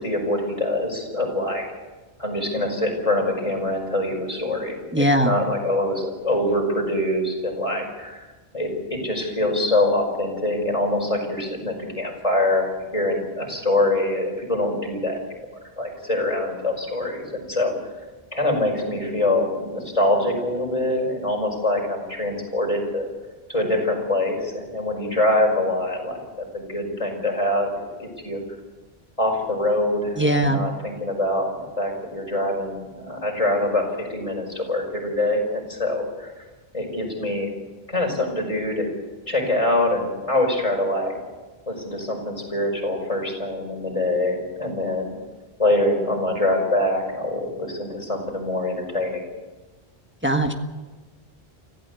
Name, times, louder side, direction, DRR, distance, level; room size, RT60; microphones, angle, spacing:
voice 1, 0.0-1.6 2.2-8.3 8.5-15.2 15.8-17.7 18.3-23.1 23.5-27.7 28.0-28.4 29.2-36.3 36.7-37.5 37.9-38.9 39.3-41.2 41.7-45.1 45.6-49.2, left 1 dB, 35° left, 1 dB, 5.5 m, -24 dB
voice 2, 4.9-5.3 30.2-30.6 50.2-50.5, right 1 dB, 10° right, 4 dB, 1.5 m, -20 dB
25.0 x 15.5 x 8.3 m, 1.2 s
omnidirectional pair, 1.0 m